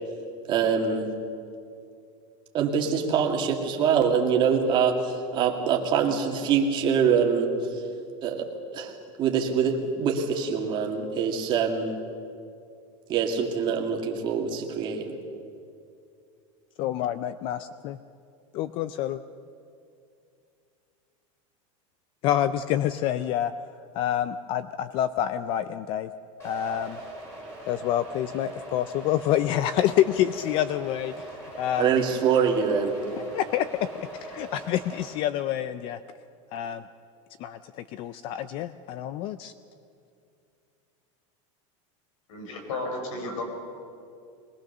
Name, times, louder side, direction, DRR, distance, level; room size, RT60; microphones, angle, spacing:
voice 1, 0.5-1.1 2.5-7.5 8.2-12.0 13.1-15.1 31.8-32.9, right 6 dB, 30° right, 2 dB, 2.1 m, -24 dB
voice 2, 16.8-17.6 17.8-18.0 18.5-19.2 22.2-23.5 23.9-26.1 26.4-27.0 27.7-32.0 33.2-36.0 36.5-36.8 37.4-39.5, left 11 dB, 30° left, 14 dB, 0.4 m, -27 dB
sound 1, 26.4-35.0, right 1 dB, 15° left, 5.9 m, -41 dB
voice 3, 42.3-43.4, left 2 dB, 85° left, 4 dB, 4.9 m, -33 dB
22.5 x 19.0 x 6.7 m, 2.5 s
supercardioid pair, 175°, 17 cm